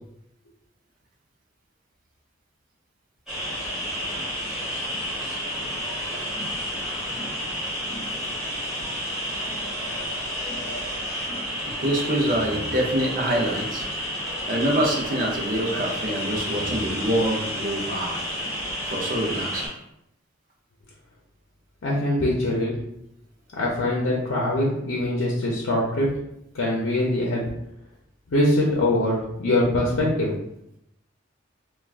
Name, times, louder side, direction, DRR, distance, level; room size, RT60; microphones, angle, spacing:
sound 1, 3.3-19.7, equal, ahead, 1.2 m, -30 dB
voice 1, 11.8-13.8 14.5-18.2 18.9-19.7, right 1 dB, 45° right, 0 dB, 0.6 m, -25 dB
voice 2, 21.8-22.7 23.6-26.1 26.5-27.4 28.3-30.3, left 1 dB, 80° left, -3 dB, 0.6 m, -23 dB
3.3 x 2.3 x 2.4 m, 0.80 s
head